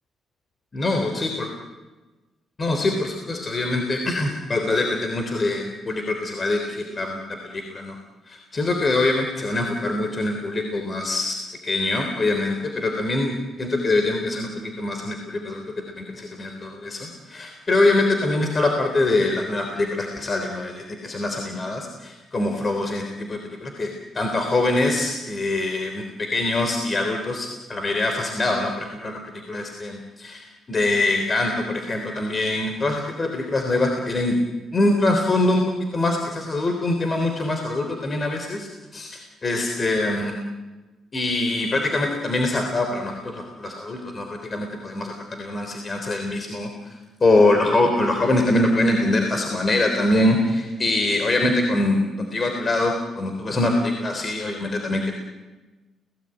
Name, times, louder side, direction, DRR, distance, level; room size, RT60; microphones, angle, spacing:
voice 1, 0.7-1.5 2.6-7.2 7.4-8.0 8.3-11.4 11.6-13.3 13.6-15.6 16.0-23.9 24.1-34.4 34.7-35.6 35.9-40.3 41.1-46.7 47.2-55.1, left 2 dB, 35° left, 4 dB, 3.6 m, -24 dB
29.5 x 18.0 x 9.1 m, 1.2 s
cardioid pair, 90°, 0 cm